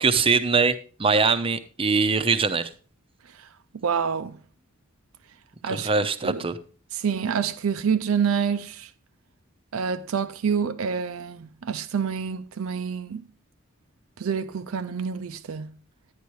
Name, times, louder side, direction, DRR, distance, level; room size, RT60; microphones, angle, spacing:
voice 1, 0.0-2.7 5.8-6.5, right 4 dB, 25° right, 0.6 m, -22 dB
voice 2, 3.8-4.4 5.6-5.9 6.2-6.5 6.9-8.9 9.7-13.3 14.2-15.7, right 6 dB, 80° right, 0.5 m, -27 dB
10.5 x 9.9 x 3.1 m
head